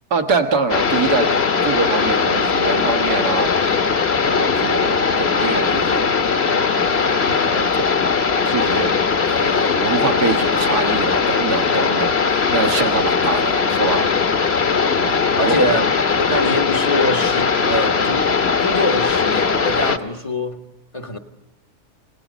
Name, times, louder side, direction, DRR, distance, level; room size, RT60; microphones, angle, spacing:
voice 1, 0.1-1.3 1.6-3.7 4.2-6.1 6.8-7.9 8.4-8.9 9.3-14.1 15.0-15.7, right 4 dB, 80° right, 6 dB, 2.1 m, -24 dB
sound 1, 0.7-20.0, left 5 dB, 45° left, 1.3 m, -19 dB
voice 2, 14.7-15.0 15.4-15.9 16.2-20.6 20.9-21.2, left 1 dB, 25° left, 6 dB, 0.9 m, -24 dB
29.0 x 17.5 x 5.1 m, 1.0 s
omnidirectional pair, 1.7 m